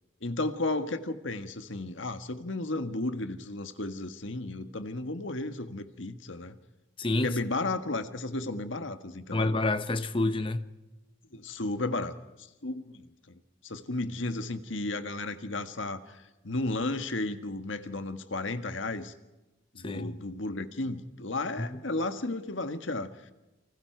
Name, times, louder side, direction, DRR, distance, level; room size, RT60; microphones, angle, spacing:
voice 1, 0.2-6.6 7.2-9.5 11.3-12.1 12.4-13.3 13.6-19.1 19.7-23.1, left 2 dB, 80° left, 1.6 m, -33 dB
voice 2, 7.0-7.4 9.3-10.6 19.8-20.1 21.6-21.8, left 2 dB, 25° left, 1.0 m, -28 dB
29.5 x 25.5 x 4.6 m
head